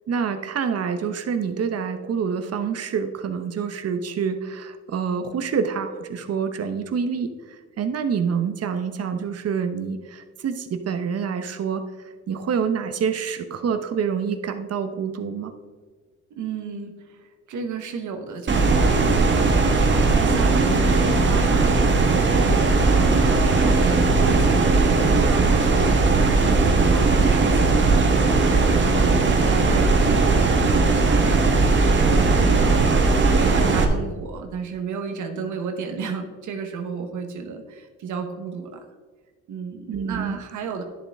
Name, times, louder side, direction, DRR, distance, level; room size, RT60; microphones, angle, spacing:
voice 1, 0.1-7.3 7.8-11.8 12.3-15.5 39.9-40.4, right 6 dB, 55° right, 8 dB, 1.0 m, -27 dB
voice 2, 16.4-17.2 17.5-32.4 32.8-38.8 39.5-40.8, right 5 dB, 75° right, 5 dB, 1.2 m, -32 dB
sound 1, 18.5-33.9, right 3 dB, 40° right, 1.4 m, -18 dB
11.0 x 7.3 x 3.6 m, 1.4 s
cardioid pair, 90°, 30 cm